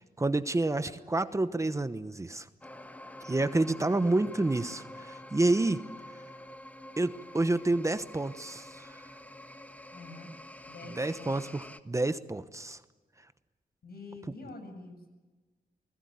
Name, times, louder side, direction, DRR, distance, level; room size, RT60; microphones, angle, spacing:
voice 1, 0.2-2.5 3.2-5.8 7.0-9.0 11.0-12.8, right 2 dB, 20° right, 12 dB, 1.1 m, -29 dB
sound 1, 2.6-11.8, left 1 dB, 10° left, 1.5 m, -47 dB
voice 2, 9.9-10.3 10.7-11.5 13.8-15.1, left 3 dB, 75° left, 6 dB, 7.6 m, -47 dB
30.0 x 20.5 x 9.5 m, 1.2 s
wide cardioid pair, 125°, 16 cm